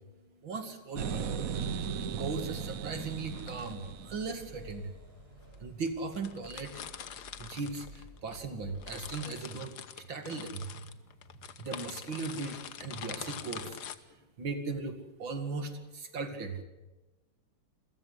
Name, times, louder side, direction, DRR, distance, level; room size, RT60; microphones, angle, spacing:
voice 1, 0.4-1.3 2.1-4.9 5.6-6.7 7.4-11.0 11.6-13.8 14.4-16.6, right 4 dB, 80° right, 7 dB, 3.1 m, -38 dB
sound 1, 1.0-4.8, right 6 dB, 55° right, 1.1 m, -37 dB
sound 2, 1.1-1.3 3.2-3.9 4.7-4.8 5.5-5.6 5.9-6.0 6.1-8.4 8.7-14.0, left 8 dB, 60° left, 1.6 m, -45 dB
sound 3, 2.9-9.2, equal, 30° right, 4.7 m, -54 dB
28.0 x 15.5 x 8.1 m, 1.1 s
omnidirectional pair, 2.1 m